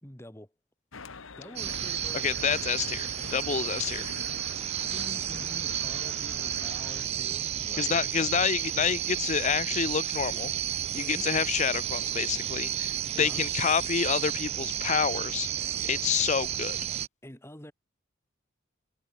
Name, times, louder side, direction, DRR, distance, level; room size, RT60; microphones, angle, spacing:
voice 1, 0.0-0.5 1.4-2.3 4.9-8.5 10.9-11.3 13.1-13.4 17.2-17.7, left 1 dB, 15° left, 3.1 m, -46 dB
sound 1, 0.9-7.1, left 4 dB, 85° left, 1.6 m, -45 dB
sound 2, 1.6-17.1, right 10 dB, 30° right, 0.3 m, -32 dB
voice 2, 2.2-4.2 7.8-10.5 10.9-15.5 15.8-16.8, left 7 dB, 35° left, 0.5 m, -28 dB
head